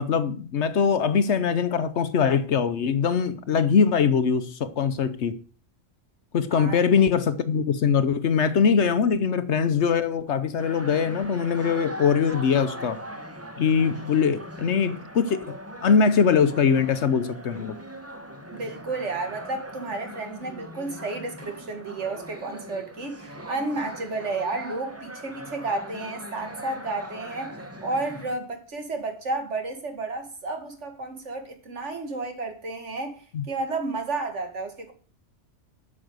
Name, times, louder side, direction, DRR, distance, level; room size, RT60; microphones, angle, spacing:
voice 1, 0.0-5.4 6.3-13.0 13.6-15.6 15.8-17.8 33.3-33.4, left 6 dB, 70° left, 1.1 m, -22 dB
voice 2, 6.5-6.8 18.5-34.9, right 3 dB, 75° right, 2.3 m, -32 dB
sound 1, 10.6-28.3, equal, 15° right, 1.1 m, -40 dB
8.8 x 6.4 x 7.9 m
omnidirectional pair, 1.2 m